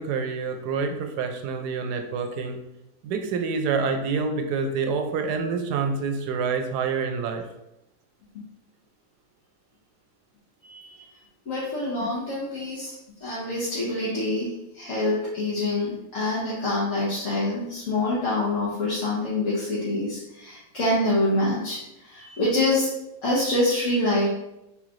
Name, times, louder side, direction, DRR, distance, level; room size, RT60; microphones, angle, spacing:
voice 1, 0.0-2.6 3.0-7.4, right 5 dB, 85° right, 5 dB, 1.1 m, -27 dB
voice 2, 10.6-11.0 11.5-12.9 13.2-22.9 23.2-24.3, left 2 dB, 55° left, -8 dB, 1.2 m, -26 dB
3.6 x 3.1 x 3.7 m, 0.89 s
omnidirectional pair, 1.7 m